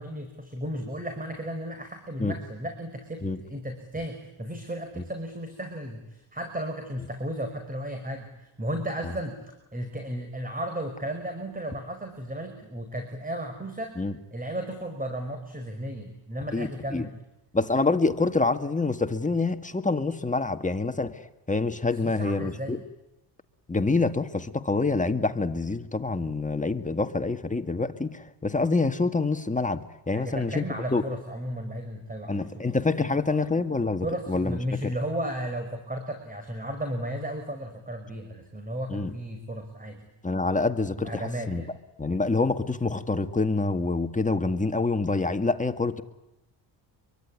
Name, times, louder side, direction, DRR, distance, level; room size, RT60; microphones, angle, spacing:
voice 1, 0.0-9.4 9.7-13.9 14.3-17.1 21.9-22.7 30.1-33.5 34.0-40.1 41.0-41.7, right 1 dB, 20° right, 6 dB, 5.2 m, -34 dB
voice 2, 16.5-17.1 17.5-21.2 21.5-22.8 23.7-29.8 30.1-30.6 30.9-31.0 32.3-34.9 38.9-39.1 40.2-41.1 41.5-41.6 42.0-46.0, left 3 dB, 15° left, 8 dB, 1.9 m, -26 dB
25.5 x 24.0 x 9.7 m, 0.90 s
cardioid pair, 85°, 47 cm